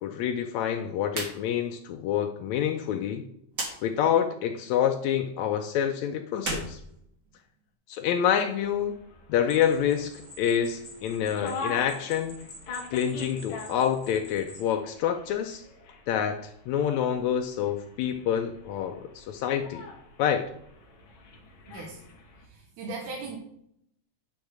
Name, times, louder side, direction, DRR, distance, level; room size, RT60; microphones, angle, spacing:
voice 1, 0.0-3.2 3.8-6.8 7.9-8.9 9.3-12.4 12.9-15.6 16.1-19.9 20.2-20.5, left 9 dB, 90° left, 5 dB, 1.6 m, -27 dB
sound 1, 1.1-1.4 1.7-1.8 3.5-3.8 6.3-7.6, right 2 dB, 90° right, 0.7 m, -34 dB
sound 2, 8.6-22.5, left 3 dB, 50° left, 1.8 m, -44 dB
sound 3, 9.5-14.7, left 1 dB, 30° left, 2.7 m, -48 dB
voice 2, 21.7-22.0 22.5-23.4, right 3 dB, 70° right, 0 dB, 2.5 m, -38 dB
9.8 x 3.6 x 6.2 m, 0.73 s
omnidirectional pair, 3.9 m